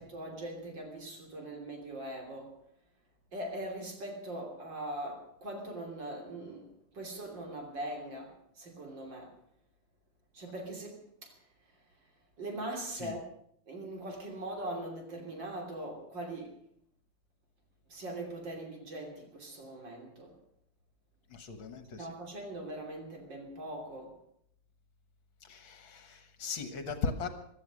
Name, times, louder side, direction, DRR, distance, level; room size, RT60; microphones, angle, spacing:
voice 1, 0.0-2.6 3.3-9.4 10.3-11.4 12.4-13.3 13.7-16.6 17.9-20.4 22.0-24.2, right 1 dB, 55° right, 3.7 m, -41 dB
voice 2, 21.3-22.1 25.4-27.3, left 5 dB, 65° left, 2.1 m, -38 dB
16.5 x 12.5 x 6.3 m
omnidirectional pair, 2.4 m